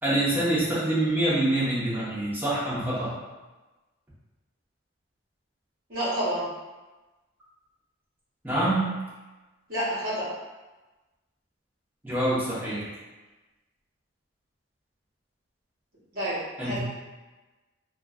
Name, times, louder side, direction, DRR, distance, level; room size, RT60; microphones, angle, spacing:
voice 1, 0.0-3.2 8.4-8.9 12.0-12.9 16.6-16.8, right 1 dB, 10° right, -10 dB, 0.9 m, -25 dB
voice 2, 5.9-6.5 9.7-10.3 16.1-16.8, right 1 dB, 50° right, -9 dB, 1.1 m, -29 dB
3.0 x 2.4 x 2.3 m, 1.2 s
head